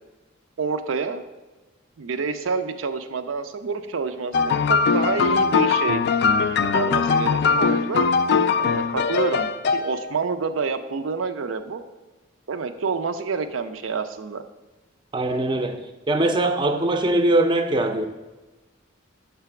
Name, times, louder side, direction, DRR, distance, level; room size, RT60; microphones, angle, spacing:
voice 1, 0.6-1.2 2.0-6.0 6.7-8.1 8.6-11.8 12.5-14.4, right 5 dB, 85° right, 9 dB, 0.5 m, -28 dB
sound 1, 4.3-10.1, left 5 dB, 55° left, 0.3 m, -21 dB
voice 2, 15.1-15.8 16.1-18.1, right 2 dB, 25° right, 7 dB, 0.4 m, -21 dB
6.7 x 3.4 x 5.8 m, 1.1 s
head